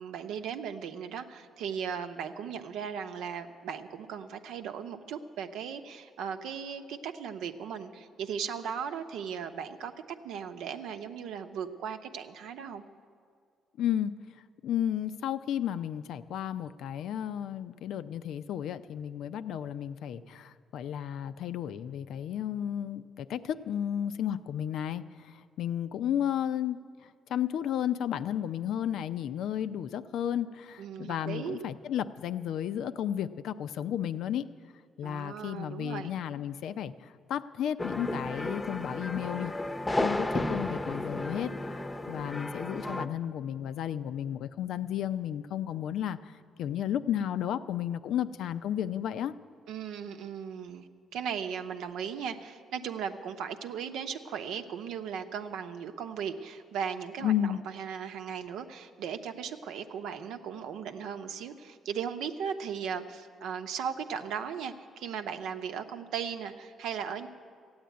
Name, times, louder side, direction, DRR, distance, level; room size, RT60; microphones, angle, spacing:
voice 1, 0.0-9.9 10.2-12.8 30.8-31.6 35.0-36.1 49.7-67.3, right 7 dB, 85° right, 7 dB, 0.8 m, -37 dB
voice 2, 13.8-14.1 14.6-26.8 27.3-34.5 35.0-39.5 40.0-41.5 42.1-49.3 57.2-57.6, left 10 dB, 80° left, 12 dB, 0.5 m, -33 dB
sound 1, 37.8-43.1, left 2 dB, 20° left, 0.7 m, -33 dB
14.5 x 8.8 x 9.3 m, 2.1 s
cardioid pair, 90°, 0 cm